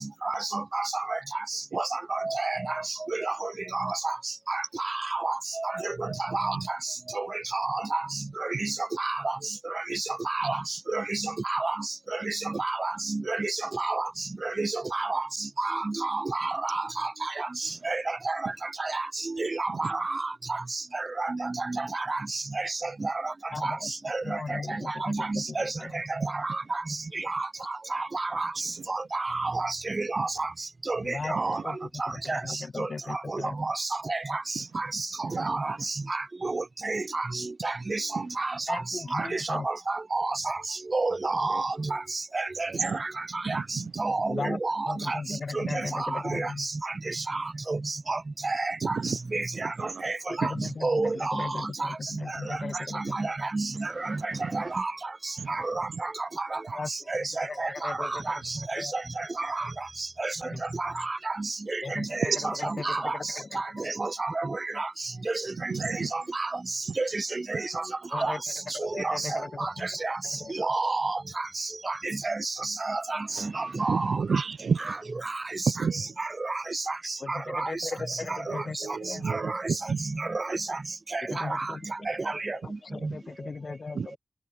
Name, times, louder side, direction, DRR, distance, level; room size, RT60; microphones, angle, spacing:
voice 1, 0.2-1.2 1.7-2.8 3.1-4.2 4.5-6.8 7.2-7.3 7.5-8.0 8.4-9.4 9.7-10.6 10.9-11.8 12.1-14.1 14.4-15.2 15.6-18.4 18.8-19.1 19.4-20.3 20.9-23.3 23.6-23.8 24.0-26.6 27.3-27.5 27.9-28.5 28.9-30.5 30.9-31.6 32.0-32.4 32.8-34.4 34.8-34.9 35.2-38.8 39.1-40.6 40.9-42.0 42.3-43.6 44.0-45.2 45.5-46.7 47.1-47.4 47.7-48.2 48.4-49.7 50.0-50.5 50.8-51.5 51.8-51.9 52.9-54.9 55.5-56.1 56.4-56.6 57.1-59.7 60.2-60.3 60.8-63.2 63.5-63.6 64.0-64.9 65.3-65.4 65.6-66.5 67.0-67.8 68.1-68.3 68.8-70.2 70.5-73.2 73.5-74.4 74.9-75.0 76.2-77.0 77.3-77.7 79.3-79.6 80.2-80.8 81.1-81.7 82.4-82.6 83.0-83.1, right 3 dB, 40° right, 1.0 m, -30 dB
voice 2, 23.5-23.9 24.2-25.9 31.0-31.4 31.6-31.8 32.2-33.5 38.7-39.7 44.3-44.6 44.9-46.7 50.3-53.3 56.7-56.9 57.2-58.2 58.7-58.9 60.5-60.6 61.8-62.1 62.4-63.6 68.1-68.4 68.7-69.9 70.3-70.5 77.2-79.2 81.3-81.9 82.3-84.2, left 4 dB, 55° left, 3.2 m, -37 dB
voice 3, 34.9-35.6 37.9-38.3 41.5-41.6 42.7-43.0 43.4-44.0 45.6-45.7 48.8-49.2 49.6-50.0 50.4-50.7 54.1-54.8 55.4-55.7 65.7-66.1 66.9-67.0 73.3-75.0 75.7-76.1 78.5-80.0 83.9-84.2, right 5 dB, 75° right, 0.4 m, -32 dB
cardioid pair, 65°, 0 cm